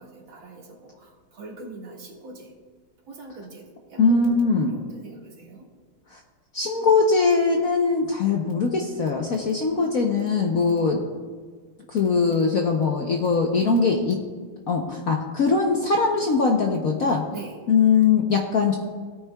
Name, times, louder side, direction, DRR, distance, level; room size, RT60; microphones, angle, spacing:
voice 1, 0.0-2.5 3.1-5.7 17.3-17.6, right 3 dB, 70° right, -2 dB, 2.6 m, -43 dB
voice 2, 4.0-4.7 6.1-6.2 6.5-11.0 11.9-14.2 14.7-17.2 17.7-18.8, left 4 dB, 60° left, 1 dB, 1.0 m, -21 dB
17.5 x 9.1 x 2.3 m, 1.5 s
omnidirectional pair, 2.3 m